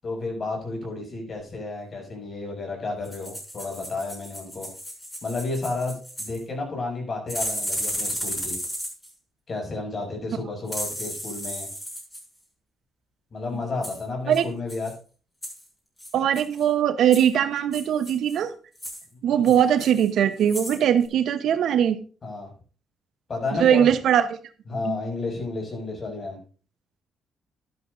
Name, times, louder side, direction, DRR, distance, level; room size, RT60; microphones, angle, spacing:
voice 1, 0.0-4.7 5.2-8.6 9.5-11.7 13.3-14.9 19.3-19.6 22.2-22.5 23.3-23.9 24.7-26.4, left 3 dB, 40° left, 1 dB, 6.7 m, -32 dB
sound 1, 3.0-6.4 7.3-9.1 10.7-12.2 13.8-14.0 14.3-14.4 14.7-14.9 15.4-15.6 16.0-16.6 17.1-17.3 17.7-18.4 18.8-19.0 19.5-20.1 20.4-20.8 21.1-21.2, equal, 10° left, 5.9 m, -34 dB
voice 2, 16.1-18.5 19.2-22.0 23.6-24.4 24.8-25.0, right 9 dB, 75° right, 11 dB, 0.9 m, -21 dB
12.5 x 11.5 x 2.6 m, 0.37 s
cardioid pair, 90°, 0 cm